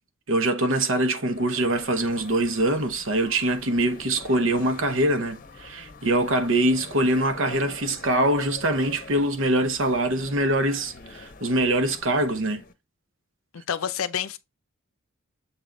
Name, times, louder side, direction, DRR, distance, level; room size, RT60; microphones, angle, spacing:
voice 1, 0.3-12.6, right 1 dB, 65° right, 0.9 m, -23 dB
sound 1, 1.1-12.7, left 3 dB, 40° left, 0.8 m, -45 dB
voice 2, 13.5-14.4, left 8 dB, 85° left, 0.6 m, -28 dB
7.3 x 3.5 x 3.8 m
head